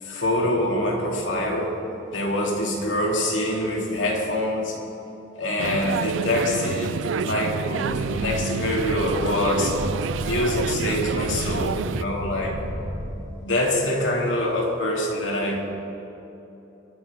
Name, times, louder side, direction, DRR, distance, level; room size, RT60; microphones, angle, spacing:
voice 1, 0.0-1.7 2.1-4.7 5.4-9.8 10.2-12.6 13.4-15.6, left 1 dB, 90° left, -1 dB, 2.3 m, -25 dB
sound 1, 5.6-12.0, right 6 dB, 90° right, 0.4 m, -29 dB
sound 2, 6.1-12.1, left 1 dB, 70° right, 1.9 m, -39 dB
sound 3, 7.9-13.2, equal, 45° left, 2.0 m, -33 dB
24.0 x 10.5 x 3.6 m, 3.0 s
head